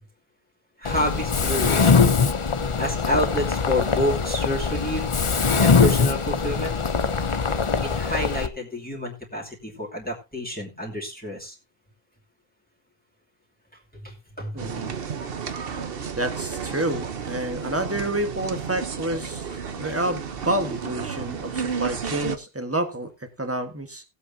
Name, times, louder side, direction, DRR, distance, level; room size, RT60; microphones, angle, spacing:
voice 1, 0.8-1.9 2.8-5.1 5.6-6.8 7.8-11.5 13.9-14.7 21.7-21.8, left 1 dB, 10° left, -3 dB, 2.7 m, -29 dB
Mechanisms, 0.9-8.5, left 5 dB, 35° left, 0.7 m, -22 dB
voice 2, 14.5-14.9 16.2-19.5 19.8-24.0, right 1 dB, 15° right, 6 dB, 1.4 m, -29 dB
sound 1, 14.6-22.4, right 6 dB, 65° right, 1.1 m, -32 dB
18.5 x 8.2 x 2.7 m, 0.25 s
omnidirectional pair, 1.0 m